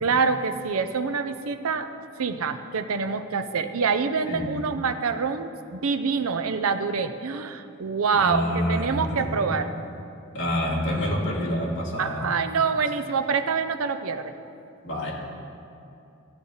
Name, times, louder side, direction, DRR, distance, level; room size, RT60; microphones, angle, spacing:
voice 1, 0.0-9.7 12.0-14.3, right 5 dB, 80° right, 9 dB, 0.6 m, -26 dB
voice 2, 8.1-9.6 10.3-12.2 14.8-15.1, equal, 60° left, -6 dB, 2.6 m, -27 dB
15.5 x 9.7 x 3.9 m, 2.6 s
head